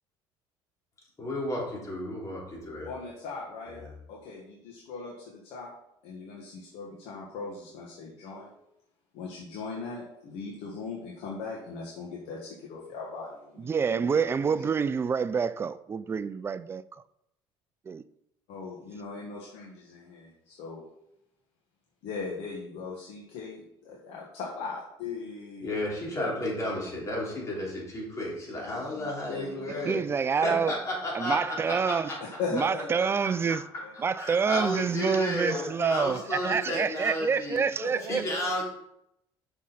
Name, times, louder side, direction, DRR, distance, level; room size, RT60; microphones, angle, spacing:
voice 1, 1.2-2.9 3.7-3.9 25.6-30.0 30.4-32.2 33.2-33.6 33.9-37.6 38.1-38.6, left 1 dB, 30° left, 2.9 m, -33 dB
voice 2, 2.8-3.8 4.1-5.7 6.0-8.5 9.1-14.5 18.5-20.8 22.0-25.7 28.5-29.5 30.5-30.6 32.2-33.0 33.4-33.5 33.8-33.9 35.5-36.7 37.8-38.3, left 4 dB, 75° left, 1.6 m, -39 dB
voice 3, 13.6-17.0 17.9-18.0 29.8-30.8 31.1-32.1 32.5-33.6 34.0-38.5, right 6 dB, 25° right, 0.3 m, -27 dB
6.2 x 5.9 x 4.2 m
cardioid pair, 110°, 10 cm